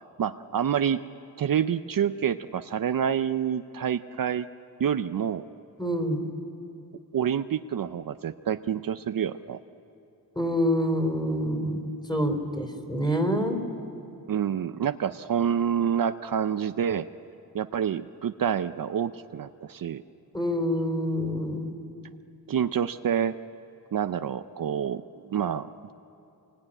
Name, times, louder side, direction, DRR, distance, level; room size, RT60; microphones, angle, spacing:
voice 1, 0.2-1.0 1.4-4.5 4.8-5.4 7.1-9.6 14.3-17.1 17.5-20.0 22.5-23.3 23.9-25.9, right 8 dB, 60° right, 10 dB, 0.6 m, -27 dB
voice 2, 5.8-6.3 10.4-13.6 20.3-21.7, equal, 10° left, 4 dB, 3.4 m, -27 dB
26.0 x 21.0 x 10.0 m, 2.7 s
wide cardioid pair, 120°, 38 cm